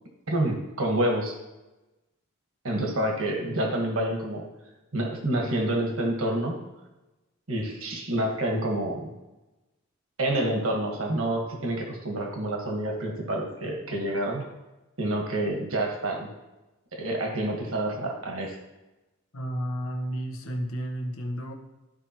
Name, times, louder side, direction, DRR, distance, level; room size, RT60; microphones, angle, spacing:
voice 1, 0.3-1.4 2.6-4.4 4.9-6.6 7.5-9.1 10.2-14.4 15.0-16.3 16.9-18.6, right 1 dB, 75° right, 1 dB, 1.4 m, -28 dB
voice 2, 19.3-21.5, equal, 80° left, 4 dB, 1.0 m, -32 dB
13.0 x 4.7 x 2.9 m, 1.0 s
head